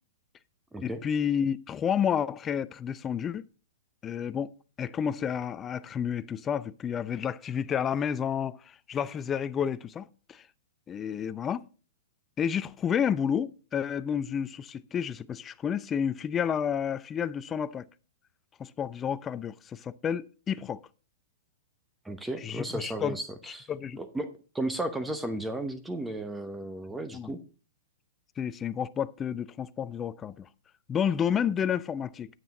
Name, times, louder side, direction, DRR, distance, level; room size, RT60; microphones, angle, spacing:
voice 1, 0.8-3.4 4.0-4.5 4.8-10.4 10.9-11.6 12.4-17.9 18.6-20.8 22.4-23.2 23.7-24.0 27.1-27.3 28.4-30.5 30.9-32.3, left 8 dB, 20° left, 0.4 m, -30 dB
voice 2, 22.0-23.7 23.9-27.4, right 1 dB, 5° right, 0.9 m, -34 dB
9.1 x 7.6 x 4.1 m
hypercardioid pair, 115°, 0 cm